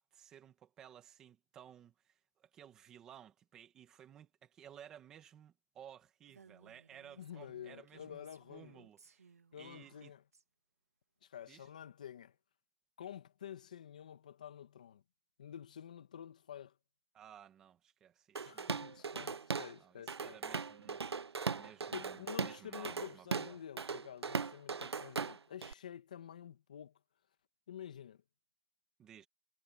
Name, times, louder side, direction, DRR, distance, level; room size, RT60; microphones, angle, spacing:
voice 1, 0.0-9.3 9.6-10.1 11.5-11.7 17.1-18.8 19.5-23.6 29.0-29.3, right 9 dB, 5° right, 2.0 m, -57 dB
Female speech woman speaking, 6.3-10.4, right 5 dB, 40° right, 3.7 m, -63 dB
voice 2, 7.2-8.8 9.5-10.2 11.2-12.3 13.0-15.0 15.4-16.8 18.4-20.4 21.9-27.0 27.7-28.2, left 9 dB, 20° left, 1.7 m, -49 dB
Drum kit / Drum, 18.4-19.7 20.1-25.7, right 5 dB, 85° right, 0.5 m, -39 dB
hypercardioid pair, 180°, 13 cm